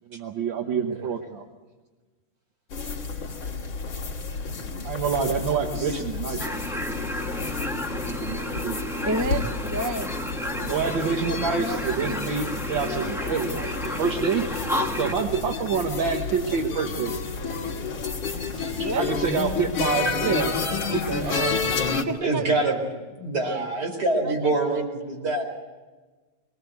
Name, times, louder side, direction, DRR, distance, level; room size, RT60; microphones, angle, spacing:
voice 1, 0.1-1.5 4.8-6.7 8.1-8.8 10.6-14.5 15.0-17.2 19.0-20.5 20.9-21.6, right 6 dB, 65° right, 3 dB, 2.0 m, -27 dB
voice 2, 0.7-1.1 5.8-6.0 6.3-6.5 18.5-19.4 20.0-20.4 21.2-21.6 22.2-22.8 23.2-25.4, right 2 dB, 50° right, 2 dB, 5.2 m, -27 dB
sound 1, 2.7-22.0, left 5 dB, 70° left, 2.9 m, -31 dB
sound 2, 6.4-15.1, equal, ahead, 1.4 m, -32 dB
voice 3, 9.0-10.2 11.2-12.2 18.7-19.0 20.2-20.3 21.9-22.7 23.4-23.6 24.2-24.5, right 1 dB, 25° right, 7 dB, 0.4 m, -31 dB
sound 3, 13.0-14.5 15.0-15.7 16.1-16.8 17.1-18.5 19.2-19.6, left 3 dB, 40° left, 3.0 m, -46 dB
24.5 x 20.5 x 8.1 m, 1.3 s
omnidirectional pair, 2.3 m